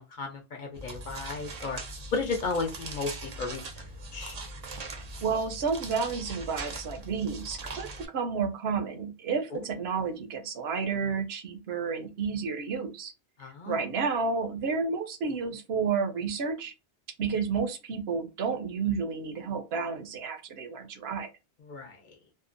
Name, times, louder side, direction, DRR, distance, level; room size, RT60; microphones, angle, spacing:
voice 1, 0.0-1.8 2.1-3.8 4.1-4.4 9.5-9.6 13.4-13.8 21.7-22.2, left 4 dB, 55° left, 0.7 m, -34 dB
sound 1, 0.7-8.1, right 2 dB, 50° right, 0.5 m, -41 dB
voice 2, 5.2-13.1 13.7-16.7 17.2-21.3, right 5 dB, 75° right, 0.8 m, -31 dB
2.7 x 2.0 x 2.5 m
omnidirectional pair, 1.1 m